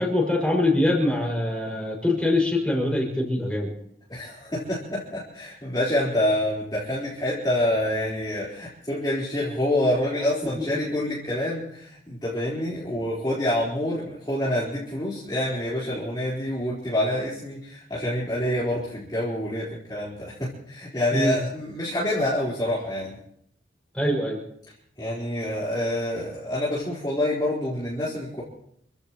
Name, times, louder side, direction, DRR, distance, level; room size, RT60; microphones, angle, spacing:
voice 1, 0.0-3.7 21.1-21.4 23.9-24.4, left 1 dB, 5° left, -2 dB, 6.1 m, -23 dB
voice 2, 4.1-23.2 25.0-28.4, left 1 dB, 20° left, -8 dB, 4.3 m, -27 dB
28.5 x 16.0 x 3.1 m, 0.70 s
head